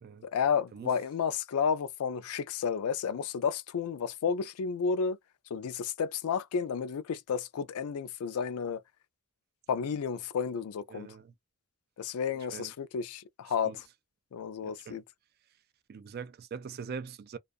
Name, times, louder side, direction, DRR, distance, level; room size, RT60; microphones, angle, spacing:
voice 1, 0.3-5.2 5.5-8.8 9.7-11.1 12.0-13.7 14.3-15.0, left 6 dB, 80° left, 0.4 m, -31 dB
voice 2, 10.9-11.3 12.3-12.7 13.5-13.8 14.6-15.0 15.9-17.4, right 6 dB, 45° right, 0.3 m, -43 dB
2.3 x 2.3 x 2.4 m
head